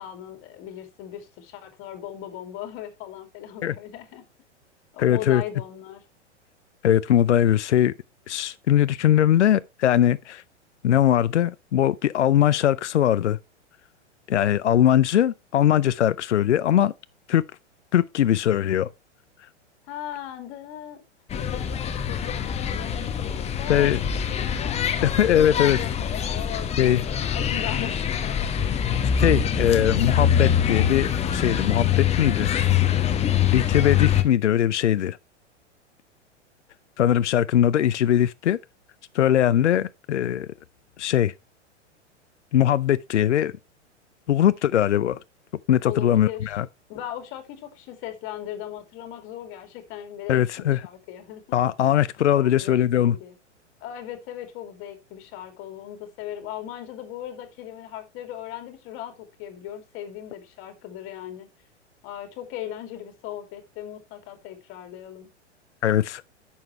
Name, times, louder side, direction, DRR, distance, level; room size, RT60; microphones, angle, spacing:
voice 1, 0.0-4.2 4.9-6.0 19.9-21.0 21.3-24.0 24.3-28.7 29.4-29.6 45.8-46.6 46.9-51.6 52.3-53.3 53.8-61.5 62.0-65.3, left 11 dB, 35° left, 2.8 m, -38 dB
voice 2, 5.0-5.4 6.8-7.9 8.3-10.4 10.8-13.4 14.3-16.9 17.3-17.4 17.9-18.9 23.7-24.0 25.0-25.8 26.8-27.0 29.2-32.5 33.5-35.2 37.0-38.6 39.1-40.5 41.0-41.3 42.5-43.5 44.3-45.2 45.7-46.7 50.3-50.8 51.5-53.2 65.8-66.2, left 11 dB, 70° left, 0.5 m, -21 dB
sound 1, 21.3-34.2, left 8 dB, 20° left, 1.1 m, -24 dB
10.5 x 7.2 x 3.3 m
figure-of-eight pair, 100°, 36 cm